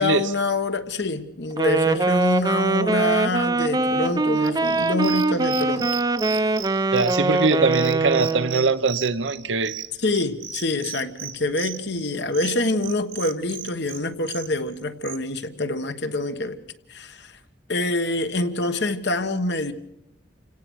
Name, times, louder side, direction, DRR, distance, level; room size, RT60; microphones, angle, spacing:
voice 1, 0.0-6.0 6.3-6.5 10.0-16.6 16.9-17.3 17.7-19.7, left 2 dB, 65° left, 1.4 m, -26 dB
Wind instrument woodwind instrument, 1.5-8.7, right 2 dB, 20° right, 0.7 m, -22 dB
sound 1, 4.4-15.2, right 11 dB, 45° right, 1.3 m, -36 dB
voice 2, 6.9-9.7, right 3 dB, 85° right, 1.0 m, -22 dB
28.5 x 17.5 x 6.4 m
head